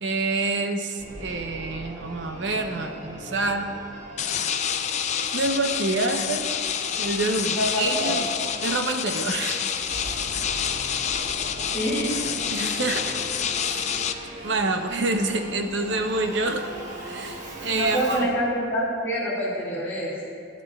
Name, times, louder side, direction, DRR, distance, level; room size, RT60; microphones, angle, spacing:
voice 1, 0.0-3.7 5.3-6.5 7.0-8.3 8.6-9.6 12.5-13.2 13.6-13.8 14.4-16.7 17.0-18.3, right 2 dB, 70° right, 5 dB, 0.7 m, -27 dB
Singing / Musical instrument, 1.0-18.3, right 1 dB, 45° right, 1.3 m, -40 dB
sound 1, 4.2-14.1, left 8 dB, 40° left, 0.4 m, -28 dB
voice 2, 7.6-8.2 11.7-12.1 17.7-20.1, equal, 15° left, -10 dB, 2.1 m, -26 dB
16.0 x 9.1 x 2.3 m, 2.3 s
head